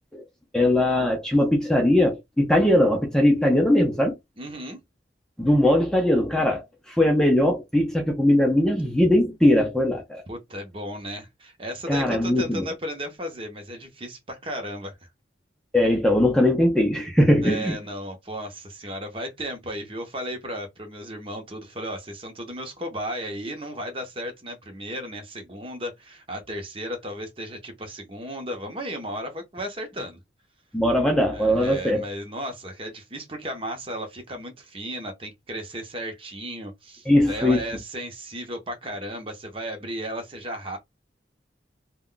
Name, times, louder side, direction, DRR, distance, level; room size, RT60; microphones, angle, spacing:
voice 1, 0.5-4.2 5.4-10.2 11.9-12.7 15.7-17.8 30.7-32.0 37.1-37.6, left 1 dB, 5° left, 0.5 m, -20 dB
voice 2, 4.4-4.8 10.3-15.1 17.4-30.2 31.3-40.8, equal, 30° right, 0.8 m, -35 dB
2.3 x 2.2 x 3.7 m
head